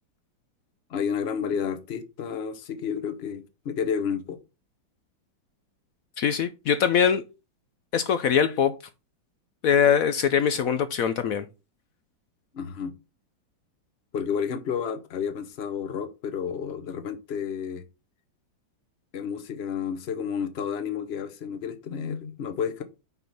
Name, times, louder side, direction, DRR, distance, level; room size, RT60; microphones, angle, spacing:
voice 1, 0.9-4.4 12.5-12.9 14.1-17.8 19.1-22.8, left 7 dB, 45° left, 0.9 m, -31 dB
voice 2, 6.2-7.2 7.9-8.7 9.6-11.5, left 7 dB, 70° left, 0.8 m, -22 dB
6.1 x 5.4 x 5.8 m
omnidirectional pair, 2.1 m